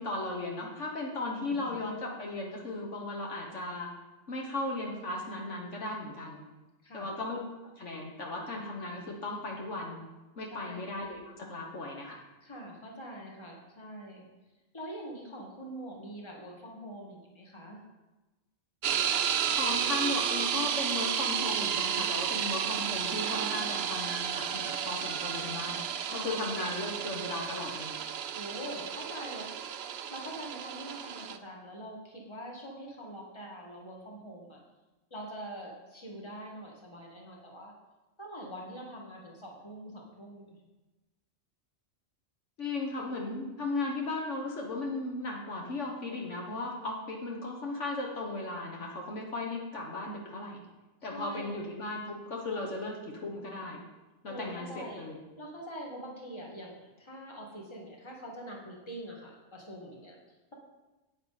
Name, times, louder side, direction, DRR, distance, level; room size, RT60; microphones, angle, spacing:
voice 1, 0.0-3.9 4.3-6.4 6.9-7.4 7.8-10.0 10.4-12.2 19.5-25.8 26.1-28.0 42.6-50.6 51.0-53.8 54.2-55.2, left 2 dB, 60° left, -1 dB, 1.6 m, -36 dB
voice 2, 1.5-1.9 6.8-7.1 10.5-10.8 12.4-14.2 14.7-17.8 26.1-26.6 28.4-29.5 30.1-34.6 35.1-37.7 38.2-40.6 51.1-51.7 54.3-55.1 55.4-60.2, equal, 20° left, -1 dB, 1.8 m, -44 dB
Belt grinder - Arboga - On run off, 18.8-31.4, right 8 dB, 60° right, 0.7 m, -32 dB
9.4 x 8.8 x 4.1 m, 1.1 s
omnidirectional pair, 1.4 m